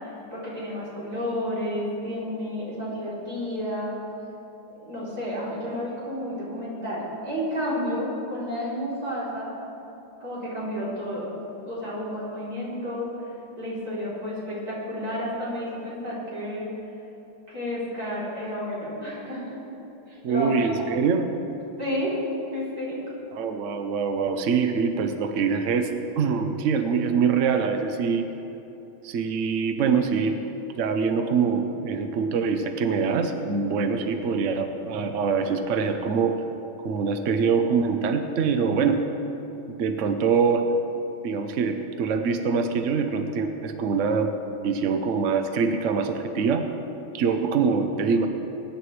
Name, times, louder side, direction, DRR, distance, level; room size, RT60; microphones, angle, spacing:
voice 1, 0.3-3.9 4.8-9.5 10.2-13.1 13.6-16.7 17.5-19.6 20.1-20.7 21.8-22.1 22.5-23.0, equal, 45° right, -8 dB, 3.9 m, -31 dB
voice 2, 20.2-21.3 23.3-25.9 26.2-28.2 29.0-30.4 30.8-36.4 36.8-39.0 39.7-40.7 41.2-44.3 44.6-46.7 47.1-48.3, right 5 dB, 75° right, 6 dB, 0.7 m, -24 dB
21.0 x 10.0 x 3.2 m, 2.9 s
omnidirectional pair, 2.3 m